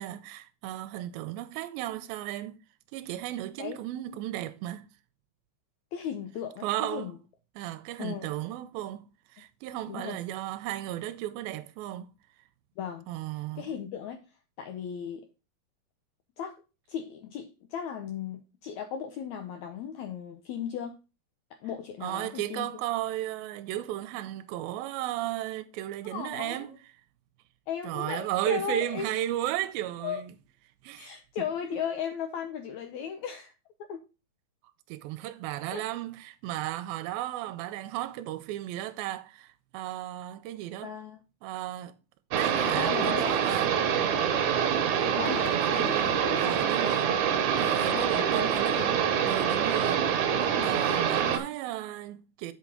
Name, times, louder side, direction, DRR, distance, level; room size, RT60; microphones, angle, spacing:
voice 1, 0.0-2.6 2.9-4.9 6.6-7.1 7.6-9.1 9.3-12.1 13.1-13.7 22.0-26.7 27.8-30.2 30.8-31.1 34.9-40.9 41.4-42.0 42.3-43.7 45.0-47.1 47.6-49.0 49.3-52.5, right 13 dB, 90° right, 2.4 m, -34 dB
voice 2, 5.9-7.2 8.0-8.3 9.9-10.2 12.8-13.1 13.3-14.2 14.6-15.3 16.4-16.6 16.9-21.0 21.5-22.7 26.1-26.7 27.7-29.1 30.0-30.2 31.0-33.5 33.8-34.0 35.7-35.8 40.8-41.2 42.7-43.4 45.2-46.4 47.9-49.1, left 8 dB, 90° left, 1.6 m, -36 dB
sound 1, 42.3-51.4, right 8 dB, 65° right, 2.1 m, -26 dB
7.9 x 4.1 x 5.7 m
omnidirectional pair, 4.2 m